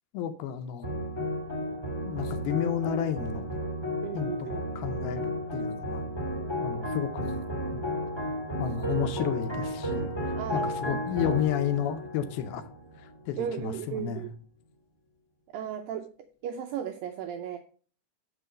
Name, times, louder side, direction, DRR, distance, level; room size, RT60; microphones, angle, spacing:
voice 1, 0.1-1.0 2.0-3.5 4.1-6.0 6.6-7.4 7.7-7.8 8.6-10.1 10.5-12.7 13.0-14.3, left 9 dB, 80° left, 8 dB, 2.4 m, -32 dB
sound 1, 0.8-13.3, equal, 25° left, 0.5 m, -33 dB
voice 2, 4.0-4.6 10.4-11.0 11.2-11.4 13.4-14.3 15.5-17.6, right 9 dB, 85° right, 6 dB, 2.0 m, -36 dB
6.8 x 6.6 x 5.0 m, 0.43 s
omnidirectional pair, 4.7 m